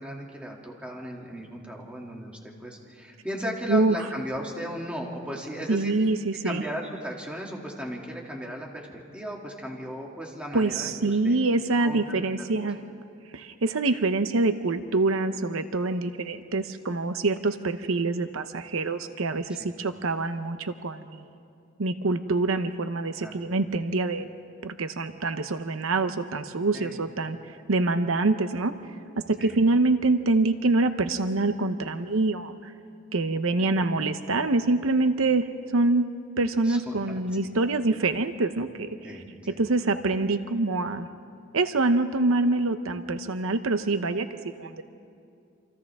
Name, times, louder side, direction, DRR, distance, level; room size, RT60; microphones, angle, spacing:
voice 1, 0.0-5.9 6.4-11.3 11.8-12.0 12.6-12.7 19.6-19.7 23.2-23.4 26.7-27.0 29.4-29.6 33.6-33.8 36.6-37.2 39.0-39.6, equal, 5° right, -2 dB, 2.6 m, -36 dB
voice 2, 5.7-6.6 10.5-12.8 13.3-21.3 21.8-24.3 24.6-27.4 27.7-28.8 29.2-32.7 33.1-36.1 36.4-39.0 39.6-41.1 41.5-44.3 44.6-44.8, right 3 dB, 85° right, 9 dB, 0.8 m, -25 dB
28.0 x 27.0 x 3.6 m, 2.5 s
head